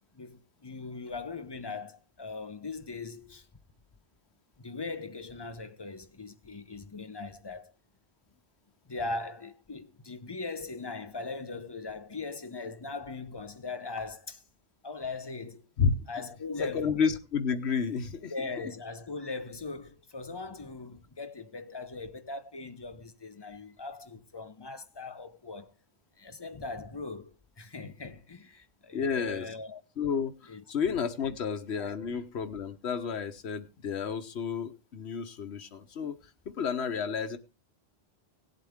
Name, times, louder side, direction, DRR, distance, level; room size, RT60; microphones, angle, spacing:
voice 1, 0.1-3.5 4.6-7.7 8.9-14.4 14.8-15.6 16.1-17.0 18.3-25.7 26.2-29.8 30.4-30.6 31.2-31.4 31.8-31.9, left 3 dB, 25° left, 0.7 m, -40 dB
voice 2, 16.6-18.3 28.9-29.5 30.0-30.3 30.7-36.2 36.5-37.4, left 6 dB, 80° left, 1.3 m, -31 dB
17.5 x 8.1 x 3.5 m
omnidirectional pair, 1.1 m